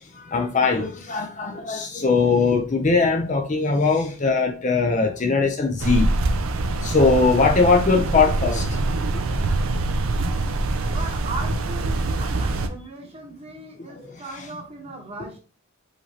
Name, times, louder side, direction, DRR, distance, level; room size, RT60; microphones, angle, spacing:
voice 1, 0.2-6.1 6.8-8.8 14.0-14.1, left 4 dB, 35° left, 0.5 m, -20 dB
sound 1, 5.8-12.7, right 2 dB, 70° right, 0.5 m, -24 dB
voice 2, 10.9-15.4, right 2 dB, 30° right, 1.0 m, -37 dB
4.8 x 3.1 x 2.9 m
head